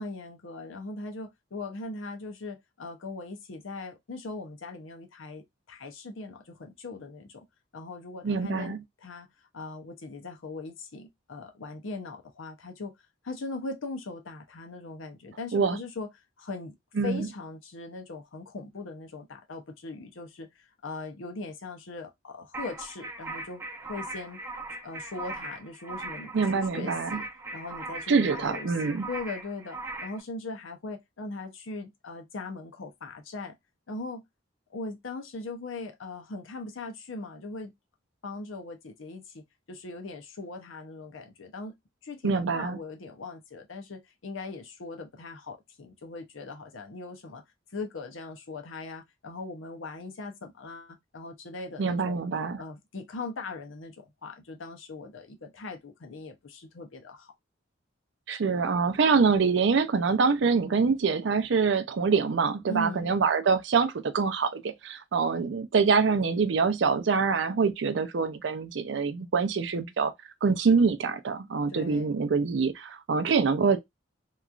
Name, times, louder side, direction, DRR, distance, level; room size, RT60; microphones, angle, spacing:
voice 1, 0.0-7.5 7.7-9.3 9.5-12.9 13.2-16.1 16.4-16.8 17.0-24.4 24.8-33.5 33.9-34.2 34.7-37.7 38.2-41.7 42.0-47.4 47.7-52.2 52.6-57.3 62.7-63.2 71.7-72.1, left 3 dB, 85° left, 0.7 m, -40 dB
voice 2, 8.2-8.8 15.5-15.8 17.0-17.3 26.3-27.2 28.1-29.1 42.2-42.8 51.8-52.6 58.3-70.1 70.4-73.8, right 5 dB, 60° right, 0.4 m, -25 dB
sound 1, 22.5-30.2, right 2 dB, 15° right, 0.5 m, -39 dB
2.9 x 2.4 x 2.4 m
head